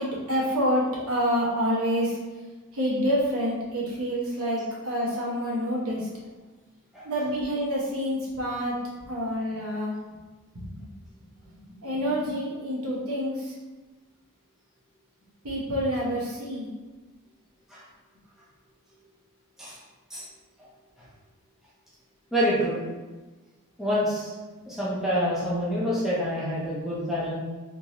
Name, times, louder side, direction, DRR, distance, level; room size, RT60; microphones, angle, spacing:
voice 1, 0.0-2.2 2.7-6.1 7.0-8.8 9.0-9.9 10.6-10.7 11.8-13.5 15.4-16.7, equal, 70° right, -5 dB, 1.1 m, -27 dB
voice 2, 22.3-22.8 23.8-24.3 24.6-27.3, equal, ahead, -9 dB, 0.8 m, -27 dB
3.6 x 2.7 x 3.0 m, 1.3 s
head